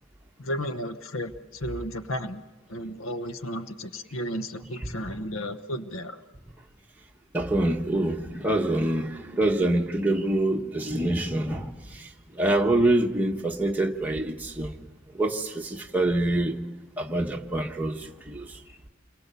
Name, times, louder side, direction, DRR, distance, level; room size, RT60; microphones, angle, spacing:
voice 1, 0.4-2.4 2.7-6.2, equal, 85° left, 1.1 m, -33 dB
voice 2, 7.3-12.1 12.3-14.7 15.1-16.6 17.0-18.5, right 1 dB, 10° right, 1.3 m, -26 dB
29.0 x 22.0 x 6.9 m
head